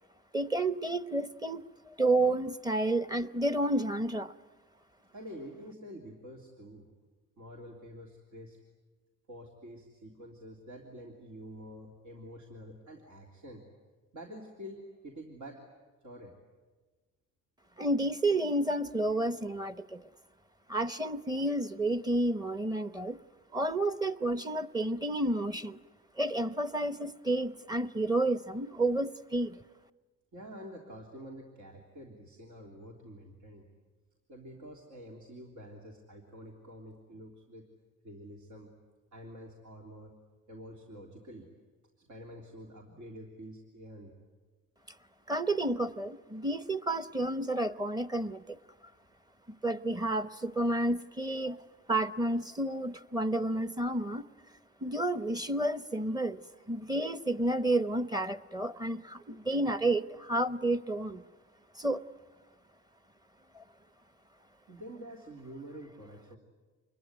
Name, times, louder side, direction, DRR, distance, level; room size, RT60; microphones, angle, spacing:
voice 1, 0.3-4.3 17.8-20.0 20.7-23.2 23.5-25.8 26.2-29.6 45.3-48.6 49.6-51.6 51.9-54.2 54.8-56.4 56.7-61.2 61.8-62.0 63.5-63.6, right 1 dB, 15° right, 13 dB, 0.8 m, -30 dB
voice 2, 5.1-6.9 7.4-8.6 9.3-13.6 14.1-15.6 16.0-16.3 30.3-33.7 34.3-37.6 38.0-38.7 39.1-40.1 40.5-41.5 42.0-44.2 49.5-49.6 64.7-66.4, equal, 80° right, -1 dB, 3.3 m, -48 dB
27.0 x 21.5 x 9.4 m, 1.3 s
cardioid pair, 90°, 30 cm